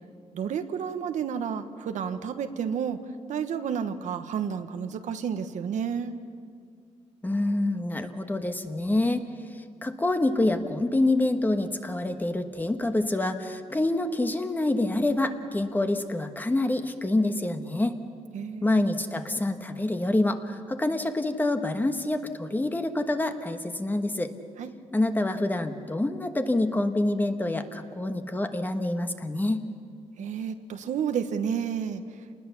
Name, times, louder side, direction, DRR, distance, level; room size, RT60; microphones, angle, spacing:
voice 1, 0.3-3.0 3.3-6.1 18.3-18.7 24.6-24.7 30.2-32.0, right 7 dB, 75° right, 8 dB, 1.2 m, -31 dB
voice 2, 7.2-9.2 9.8-18.0 18.6-24.3 24.9-29.6, left 2 dB, 15° left, 7 dB, 1.3 m, -26 dB
28.0 x 19.5 x 7.1 m, 2.2 s
cardioid pair, 135°, 13 cm